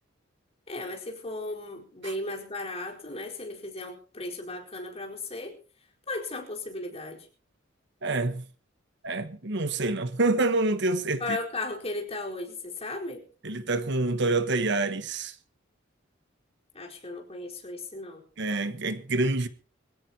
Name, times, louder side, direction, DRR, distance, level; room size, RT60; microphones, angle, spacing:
voice 1, 0.7-5.5 6.1-7.3 11.2-13.2 16.7-18.2, left 2 dB, 30° left, 4.6 m, -36 dB
voice 2, 8.0-8.4 9.0-11.4 13.4-15.3 18.4-19.5, right 2 dB, 60° right, 1.2 m, -27 dB
23.5 x 16.0 x 2.9 m
head